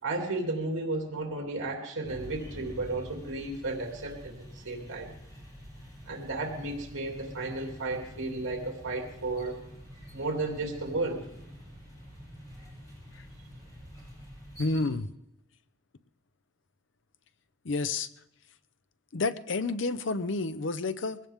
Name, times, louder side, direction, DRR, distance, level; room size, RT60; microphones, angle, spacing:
voice 1, 0.0-5.1 6.1-9.6 10.1-11.3, right 2 dB, 80° right, 1 dB, 2.7 m, -33 dB
sound 1, 2.0-14.9, equal, 20° left, 6.2 m, -47 dB
voice 2, 14.6-15.1 17.6-18.1 19.1-21.2, left 3 dB, 65° left, 13 dB, 0.6 m, -30 dB
22.0 x 16.5 x 3.6 m, 0.85 s
head